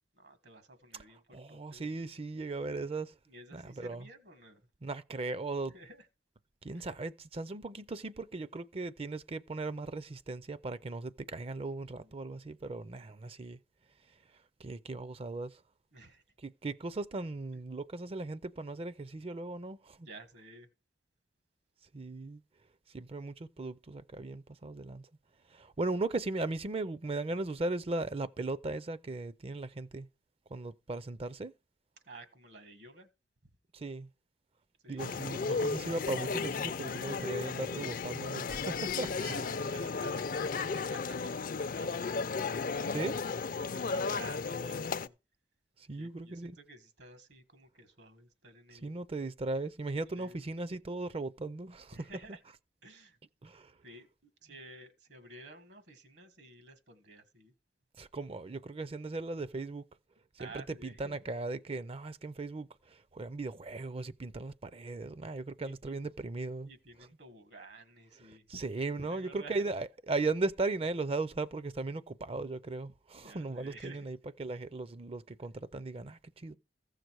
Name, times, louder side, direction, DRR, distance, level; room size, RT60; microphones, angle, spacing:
voice 1, 0.2-1.9 3.3-4.6 5.7-6.1 6.7-6.9 12.0-12.2 15.9-16.2 20.0-20.7 32.1-33.1 34.8-35.2 39.1-43.0 43.2-45.1 45.9-48.9 50.1-50.4 51.9-52.4 52.8-53.2 53.8-57.5 60.4-61.2 65.6-65.9 66.6-68.6 69.0-69.7 73.2-74.1, right 2 dB, 70° right, 1.7 m, -52 dB
voice 2, 1.3-3.1 3.5-4.1 4.8-5.7 6.6-13.6 14.6-15.5 16.4-20.1 21.9-22.4 22.9-25.1 25.5-30.1 30.5-31.5 33.7-34.1 34.9-39.7 42.9-43.2 45.9-46.6 48.8-51.9 53.4-53.7 58.0-59.8 60.4-66.7 68.2-76.5, right 3 dB, 35° right, 0.5 m, -37 dB
sound 1, 35.0-45.1, left 4 dB, 55° left, 0.5 m, -34 dB
15.0 x 6.5 x 4.7 m
head